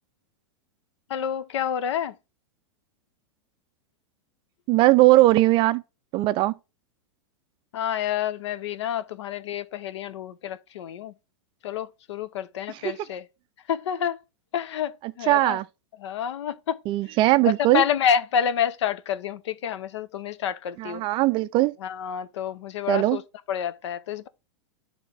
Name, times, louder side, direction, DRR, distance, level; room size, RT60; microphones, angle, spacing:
voice 1, 1.1-2.1 7.7-11.1 11.6-13.2 13.7-14.2 14.5-14.9 15.2-15.6 16.0-16.8 17.4-21.0 21.8-23.2 23.5-24.3, left 9 dB, 75° left, 0.7 m, -28 dB
voice 2, 4.7-5.8 6.1-6.5 12.7-12.9 15.3-15.6 16.9-17.8 20.8-21.7 22.9-23.2, right 18 dB, 35° right, 0.4 m, -20 dB
9.7 x 3.6 x 3.4 m
hypercardioid pair, 120°, 15 cm